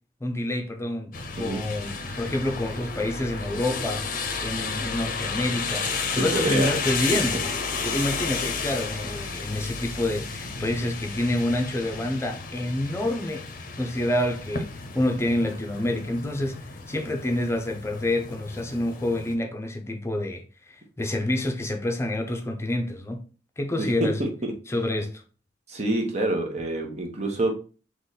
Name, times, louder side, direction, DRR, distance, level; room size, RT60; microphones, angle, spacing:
voice 1, 0.2-4.2 4.4-5.9 6.1-7.5 7.8-13.5 13.8-16.6 16.9-23.2 23.6-24.2 24.7-25.2, left 1 dB, 15° left, 0.7 m, -28 dB
sound 1, 1.1-19.3, left 4 dB, 50° left, 0.7 m, -32 dB
voice 2, 6.2-6.7 23.8-24.5 25.7-27.5, right 1 dB, 40° right, 1.1 m, -27 dB
3.9 x 3.1 x 4.0 m
head